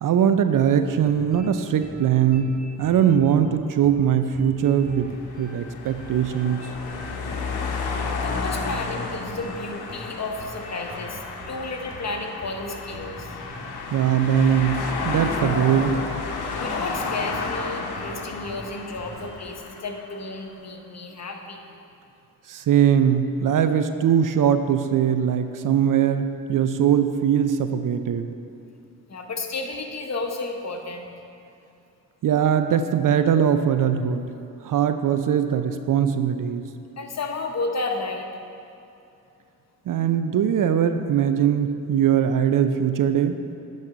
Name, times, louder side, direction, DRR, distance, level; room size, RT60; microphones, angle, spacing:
voice 1, 0.0-6.7 13.9-16.0 22.5-28.3 32.2-34.3 34.6-36.7 39.9-43.4, right 8 dB, 55° right, 9 dB, 0.5 m, -21 dB
sound 1, 0.9-19.4, right 1 dB, 25° right, 1.2 m, -43 dB
sound 2, 4.8-20.2, left 4 dB, 75° left, 0.9 m, -32 dB
voice 2, 7.3-8.0 8.2-13.4 16.6-21.8 29.1-31.1 37.0-38.3, left 3 dB, 45° left, 3 dB, 1.1 m, -32 dB
10.0 x 4.2 x 5.1 m, 2.7 s
supercardioid pair, 55°, 38 cm